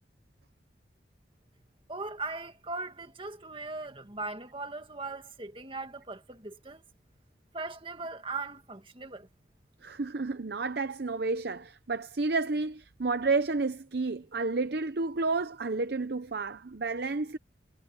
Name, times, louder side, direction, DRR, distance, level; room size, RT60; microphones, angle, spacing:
voice 1, 1.9-6.8 7.5-9.3, right 3 dB, 30° right, 2.0 m, -39 dB
voice 2, 9.8-17.4, right 3 dB, 60° right, 0.7 m, -31 dB
head